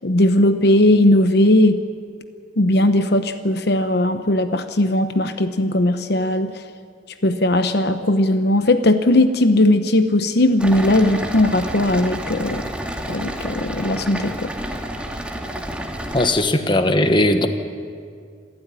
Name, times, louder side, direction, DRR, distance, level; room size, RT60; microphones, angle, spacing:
voice 1, 0.0-1.8 2.6-6.5 7.2-12.6 13.1-14.5, left 1 dB, 60° left, 9 dB, 1.0 m, -18 dB
sound 1, 10.6-16.3, right 1 dB, 5° right, 2.2 m, -29 dB
voice 2, 16.1-17.5, left 1 dB, 25° left, 8 dB, 1.3 m, -18 dB
26.5 x 14.5 x 9.8 m, 2.2 s
head